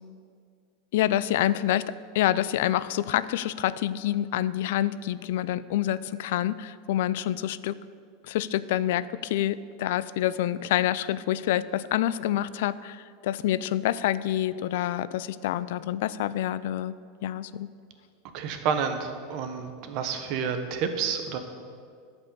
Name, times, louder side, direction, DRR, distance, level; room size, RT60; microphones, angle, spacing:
voice 1, 0.9-7.8 8.2-17.0 17.2-17.7, left 13 dB, 75° left, 17 dB, 0.4 m, -27 dB
voice 2, 18.3-21.4, right 6 dB, 50° right, 7 dB, 1.2 m, -29 dB
12.5 x 5.4 x 8.3 m, 2.1 s
supercardioid pair, 140°, 0 cm